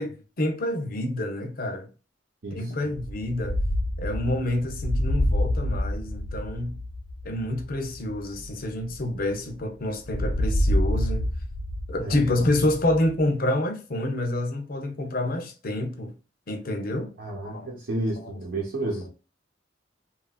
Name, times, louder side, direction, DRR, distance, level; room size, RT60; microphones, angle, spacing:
voice 1, 0.0-1.9 2.5-3.6 4.0-6.8 7.2-11.3 11.9-16.1 16.5-17.1 17.4-17.7 18.2-18.3, left 1 dB, 50° left, 0.6 m, -28 dB
Distant Bombing, 3.0-9.6 10.0-13.2, left 1 dB, 90° left, 0.9 m, -28 dB
voice 2, 17.2-19.1, right 2 dB, 60° right, 0.8 m, -31 dB
3.0 x 2.5 x 2.3 m
head